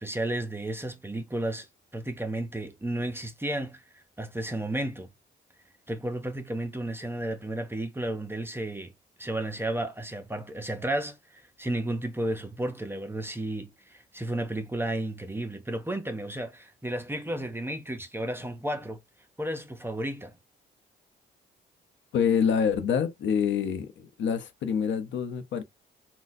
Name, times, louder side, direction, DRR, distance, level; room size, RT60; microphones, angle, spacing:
voice 1, 0.0-1.7 1.9-3.8 4.2-5.1 5.9-8.9 9.2-19.0 19.4-20.3, right 1 dB, 10° right, 0.5 m, -33 dB
voice 2, 22.1-25.6, left 7 dB, 70° left, 0.7 m, -26 dB
4.0 x 2.2 x 2.6 m
cardioid pair, 90°, 20 cm